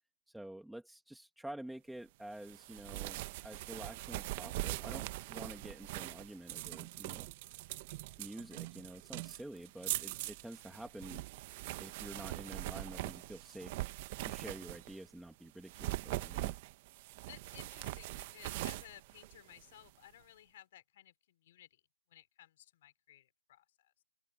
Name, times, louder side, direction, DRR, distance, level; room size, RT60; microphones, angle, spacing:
voice 1, 0.3-7.3 8.2-11.2 11.8-13.9 14.2-16.5, right 1 dB, ahead, 2.1 m, -49 dB
sound 1, 2.4-15.1 15.6-19.9, right 19 dB, 20° right, 1.0 m, -42 dB
voice 2, 17.3-21.8 22.1-24.0, left 13 dB, 25° left, 4.8 m, -57 dB
open air
hypercardioid pair, 170°, 0 cm